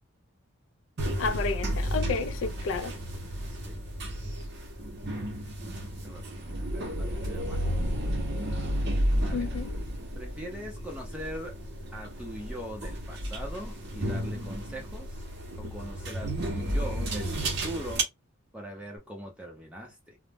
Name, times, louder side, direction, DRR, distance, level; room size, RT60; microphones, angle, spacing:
sound 1, 1.0-18.0, right 1 dB, 55° right, 0.6 m, -32 dB
voice 1, 1.2-2.9 9.3-9.7, left 4 dB, 65° left, 0.3 m, -31 dB
voice 2, 3.4-3.9 6.0-6.3 6.7-8.3 9.2-9.5 10.1-11.6 11.9-15.2 15.6-18.1 18.5-20.2, equal, 5° right, 0.5 m, -41 dB
2.1 x 2.0 x 3.3 m
head